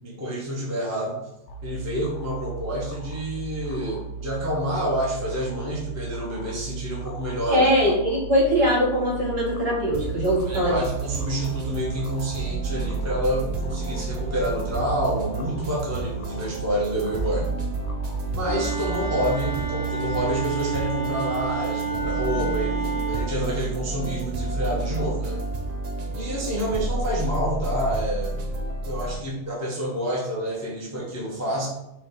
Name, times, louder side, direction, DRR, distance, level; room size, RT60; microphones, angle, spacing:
voice 1, 0.0-1.3 1.6-7.7 10.5-17.5 18.3-25.4 26.1-28.4 28.8-31.7, equal, 15° right, -4 dB, 0.8 m, -28 dB
sound 1, 1.5-19.6, right 4 dB, 70° left, 0.8 m, -36 dB
voice 2, 7.5-10.8, equal, 50° right, -6 dB, 1.9 m, -21 dB
sound 2, 9.9-29.1, right 3 dB, 70° right, 0.3 m, -30 dB
Wind instrument woodwind instrument, 18.4-23.3, right 4 dB, 30° right, 1.5 m, -30 dB
4.4 x 2.4 x 3.9 m, 0.88 s
omnidirectional pair, 1.3 m